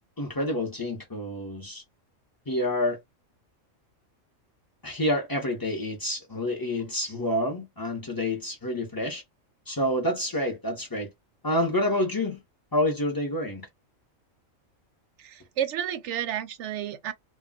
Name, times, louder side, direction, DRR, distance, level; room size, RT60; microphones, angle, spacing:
voice 1, 0.2-1.8 2.5-3.0 4.8-9.2 9.7-11.1 11.4-12.4 12.7-13.7, left 1 dB, 20° left, 0.7 m, -28 dB
voice 2, 15.2-17.1, right 10 dB, 70° right, 0.8 m, -31 dB
2.3 x 2.2 x 3.6 m
omnidirectional pair, 1.4 m